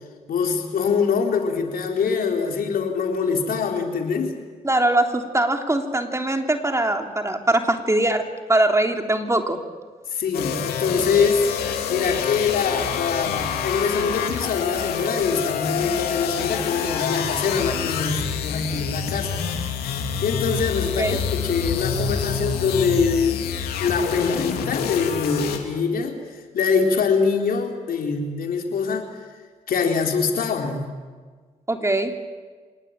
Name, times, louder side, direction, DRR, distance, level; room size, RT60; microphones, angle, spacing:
voice 1, 0.3-4.3 10.1-11.5 11.9-19.7 20.2-23.4 23.8-26.2 26.5-29.1 29.7-30.8, left 5 dB, 70° left, 3 dB, 4.1 m, -24 dB
voice 2, 4.6-9.6 21.0-21.2 31.7-32.1, right 1 dB, 20° right, 4 dB, 3.4 m, -22 dB
sound 1, 10.3-25.6, left 7 dB, 90° left, 2.7 m, -27 dB
26.5 x 19.0 x 9.0 m, 1.5 s
supercardioid pair, 55°, 16 cm